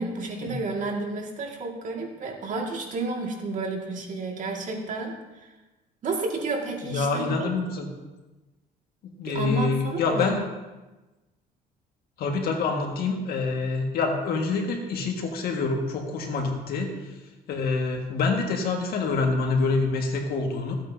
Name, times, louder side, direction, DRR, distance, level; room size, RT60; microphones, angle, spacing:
voice 1, 0.0-5.5 6.0-7.5 9.3-10.4, right 3 dB, 50° right, 0 dB, 2.0 m, -31 dB
voice 2, 6.8-7.9 9.0-10.4 12.2-17.0 17.5-20.7, left 4 dB, 65° left, 2 dB, 1.7 m, -26 dB
15.5 x 8.5 x 2.8 m, 1.1 s
cardioid pair, 110°, 17 cm